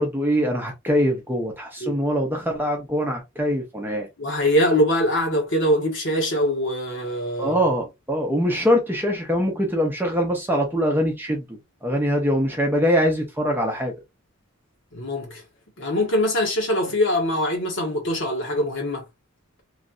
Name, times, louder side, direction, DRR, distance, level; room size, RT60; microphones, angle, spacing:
voice 1, 0.0-4.1 7.4-13.9, equal, 10° right, 0.7 m, -23 dB
voice 2, 4.2-7.6 14.9-15.4 15.8-19.0, left 1 dB, 60° left, 1.3 m, -23 dB
3.1 x 2.5 x 2.5 m
head